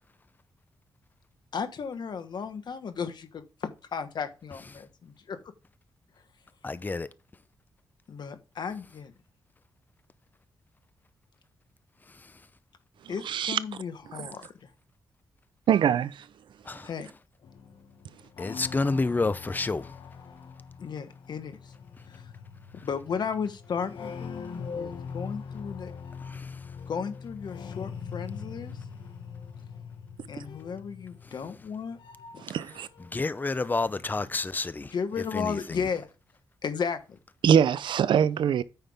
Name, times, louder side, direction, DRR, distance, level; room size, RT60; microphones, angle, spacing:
voice 1, 1.5-5.4 8.1-9.1 13.1-14.7 16.8-17.1 20.8-21.7 22.0-22.3 22.8-25.9 26.9-28.9 30.3-32.0 32.3-32.4 34.8-36.1 36.6-37.2, left 6 dB, 65° left, 1.2 m, -34 dB
voice 2, 6.6-7.1 12.1-12.4 16.6-16.9 18.4-19.9 22.8-22.9 26.2-26.7 33.1-35.8, left 3 dB, 20° left, 0.6 m, -30 dB
voice 3, 13.3-13.6 15.7-16.3 32.4-32.9 37.4-38.6, right 8 dB, 80° right, 0.5 m, -23 dB
sound 1, 17.4-33.2 33.5-34.3, left 6 dB, 85° left, 1.5 m, -42 dB
9.1 x 5.7 x 3.5 m
cardioid pair, 100°, 8 cm